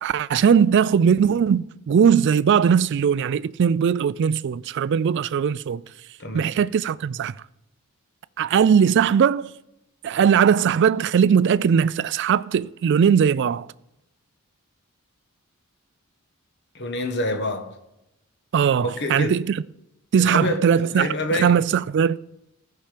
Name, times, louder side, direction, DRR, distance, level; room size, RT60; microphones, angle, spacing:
voice 1, 0.0-5.8 6.3-7.3 8.4-9.5 10.0-13.7 18.5-19.4 20.1-22.2, right 7 dB, 55° right, 0.3 m, -19 dB
voice 2, 16.7-17.7 18.8-19.4 20.2-21.6, left 1 dB, 50° left, 1.3 m, -27 dB
14.5 x 5.8 x 5.0 m
head